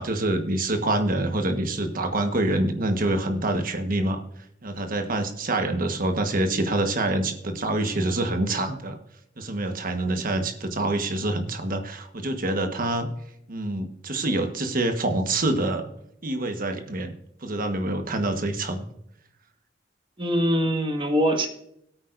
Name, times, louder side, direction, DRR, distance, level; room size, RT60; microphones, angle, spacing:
voice 1, 0.0-4.2 4.6-9.0 9.4-13.1 13.5-15.9 16.2-17.2 17.4-18.9, right 2 dB, 50° right, 7 dB, 1.3 m, -26 dB
voice 2, 20.2-21.5, equal, 25° right, 4 dB, 1.7 m, -23 dB
17.5 x 9.1 x 2.6 m, 0.73 s
head